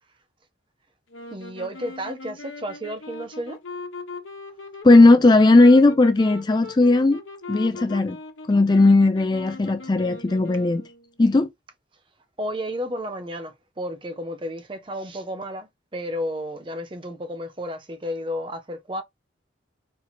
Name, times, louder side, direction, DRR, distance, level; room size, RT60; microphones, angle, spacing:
sound 1, 1.1-11.1, left 3 dB, 85° left, 1.1 m, -39 dB
voice 1, 1.3-3.6 12.4-19.0, equal, 25° right, 0.5 m, -32 dB
voice 2, 4.8-7.2 7.5-8.2 8.5-10.8 11.2-11.5, left 2 dB, 20° left, 0.3 m, -16 dB
4.4 x 2.8 x 4.1 m
head